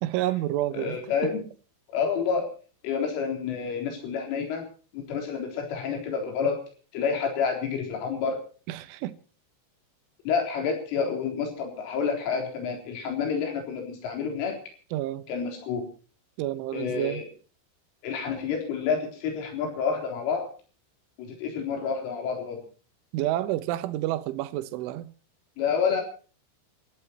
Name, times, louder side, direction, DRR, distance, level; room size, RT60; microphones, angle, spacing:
voice 1, 0.0-1.3 8.7-9.2 14.9-15.3 16.4-17.2 23.1-25.1, right 14 dB, 75° right, 3.3 m, -29 dB
voice 2, 0.7-1.4 1.9-2.5 2.8-4.7 4.9-6.6 6.9-8.4 10.3-14.6 15.3-15.9 16.7-17.3 18.0-20.5 21.2-22.6 25.6-26.0, left 6 dB, 70° left, 6.2 m, -29 dB
28.5 x 14.5 x 2.9 m
omnidirectional pair, 5.9 m